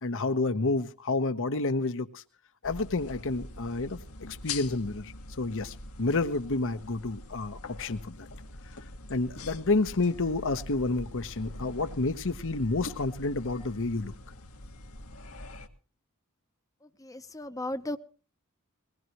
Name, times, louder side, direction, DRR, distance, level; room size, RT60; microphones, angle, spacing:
voice 1, 0.0-2.2 2.6-8.3 9.1-14.1, left 3 dB, 60° left, 9 dB, 1.0 m, -30 dB
sound 1, 2.6-15.7, left 2 dB, 80° left, 1.9 m, -43 dB
voice 2, 17.0-18.0, left 1 dB, 15° left, 10 dB, 0.8 m, -35 dB
22.0 x 18.5 x 3.0 m, 0.37 s
head